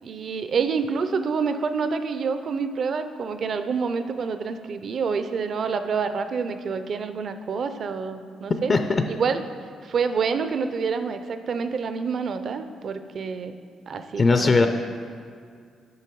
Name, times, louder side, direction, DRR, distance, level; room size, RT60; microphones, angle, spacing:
voice 1, 0.0-8.7 9.1-9.4 9.8-13.6 13.9-14.7, right 5 dB, 55° right, 9 dB, 0.5 m, -27 dB
voice 2, 8.7-9.0 14.2-14.7, left 4 dB, 35° left, 7 dB, 0.5 m, -19 dB
8.5 x 5.5 x 4.6 m, 2.2 s
cardioid pair, 90°, 0 cm